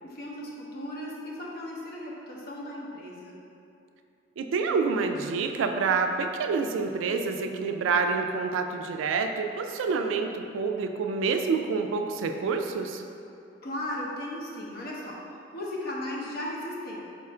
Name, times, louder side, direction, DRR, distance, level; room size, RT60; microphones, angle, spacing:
voice 1, 0.0-3.4 13.6-17.1, left 1 dB, 50° left, -3 dB, 0.6 m, -36 dB
voice 2, 4.4-13.0, right 4 dB, 75° right, 5 dB, 0.3 m, -27 dB
4.2 x 2.4 x 4.2 m, 2.6 s
head